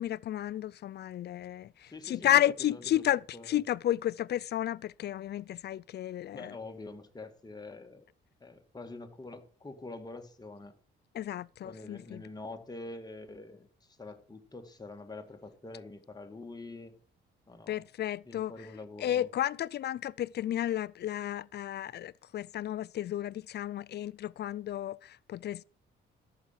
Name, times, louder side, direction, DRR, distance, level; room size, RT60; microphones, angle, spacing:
voice 1, 0.0-6.6 11.1-12.2 17.7-18.5 19.0-25.6, left 12 dB, 55° left, 0.5 m, -32 dB
voice 2, 1.9-2.4 2.7-3.0 3.3-3.6 6.3-8.0 8.4-10.7 11.6-17.0 17.5-17.8 18.3-19.3, left 2 dB, 20° left, 2.1 m, -45 dB
14.0 x 7.3 x 5.7 m
cardioid pair, 90°, 20 cm